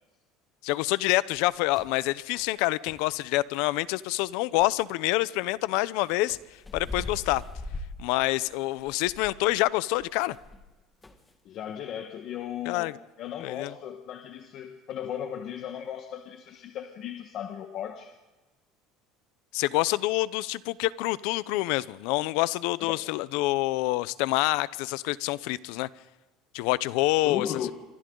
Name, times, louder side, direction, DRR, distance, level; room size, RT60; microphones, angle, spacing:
voice 1, 0.6-6.4 6.7-7.4 8.0-10.4 12.7-12.9 13.4-13.7 19.5-25.9 26.5-27.5, left 19 dB, 75° left, 0.7 m, -27 dB
sound 1, 1.4-2.0 2.4-2.5 2.9-3.1 4.6-4.7 6.3-10.7 11.0-11.3, left 2 dB, 10° left, 1.5 m, -41 dB
voice 2, 11.4-18.1 22.8-22.9 27.2-27.7, left 9 dB, 45° left, 1.4 m, -36 dB
27.5 x 24.5 x 3.9 m
cardioid pair, 155°, 0 cm